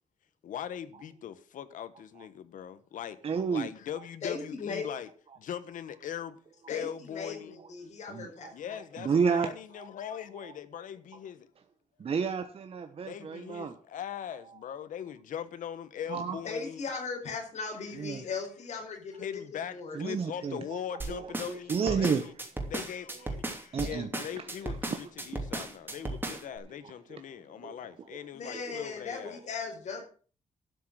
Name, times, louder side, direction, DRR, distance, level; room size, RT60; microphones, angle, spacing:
voice 1, 0.4-3.2 3.5-5.1 5.4-6.4 6.7-7.6 8.5-11.5 13.0-16.9 18.1-18.3 19.2-22.3 22.7-23.4 23.6-29.4, left 9 dB, 80° left, 1.2 m, -40 dB
voice 2, 3.2-3.7 8.1-8.5 9.0-9.5 9.8-9.9 10.2-10.5 12.0-13.7 16.1-16.4 18.0-18.2 19.9-20.8 21.1-22.2 23.7-24.5 24.9-25.0 26.0-26.1 27.6-27.7 28.5-28.6 29.2-29.3, right 6 dB, 45° right, 1.1 m, -31 dB
voice 3, 4.2-4.9 6.7-8.8 9.1-9.2 16.4-20.0 28.3-30.0, left 4 dB, 60° left, 4.5 m, -38 dB
sound 1, 21.0-26.6, right 2 dB, 15° right, 2.9 m, -36 dB
12.5 x 6.6 x 7.6 m
cardioid pair, 125°, 13 cm